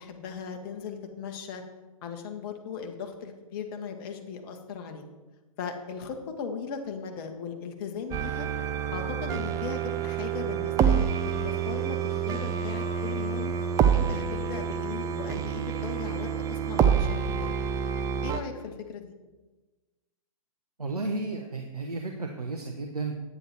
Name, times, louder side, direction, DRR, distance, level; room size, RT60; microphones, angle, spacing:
voice 1, 0.0-1.6 2.0-5.0 5.6-8.5 8.9-13.5 13.9-17.5 18.2-19.1, left 6 dB, 40° left, 4 dB, 1.5 m, -38 dB
sound 1, 8.1-18.4, right 8 dB, 15° right, 0.5 m, -27 dB
voice 2, 20.8-23.1, right 3 dB, 85° right, 2 dB, 1.1 m, -33 dB
9.8 x 9.3 x 4.4 m, 1.2 s
figure-of-eight pair, 120°, 19 cm